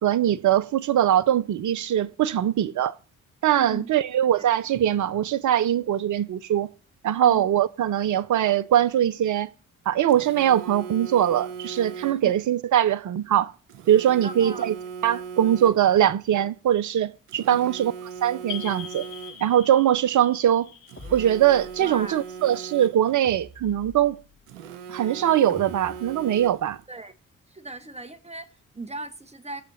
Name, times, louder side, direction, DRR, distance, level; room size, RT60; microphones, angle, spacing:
voice 1, 0.0-2.9 3.4-6.7 7.0-9.5 9.9-13.5 13.9-14.7 15.0-17.9 18.2-19.1 19.4-20.7 21.1-24.2 24.9-26.8, right 11 dB, 50° right, 0.9 m, -22 dB
voice 2, 3.5-3.9 4.4-4.5 7.2-7.4 12.1-12.3 14.2-14.7 21.8-22.2 26.9-27.1 27.5-29.6, right 2 dB, 15° right, 2.0 m, -38 dB
Telephone, 10.1-12.4 13.7-16.1 17.3-19.6 20.9-23.3 24.5-26.8, right 6 dB, 85° right, 0.7 m, -39 dB
sound 1, 18.5-22.9, left 9 dB, 70° left, 1.5 m, -42 dB
sound 2, 21.0-22.0 23.2-24.5 25.5-26.7, left 1 dB, 30° left, 4.8 m, -46 dB
19.5 x 6.8 x 3.9 m
figure-of-eight pair, 40°, 38 cm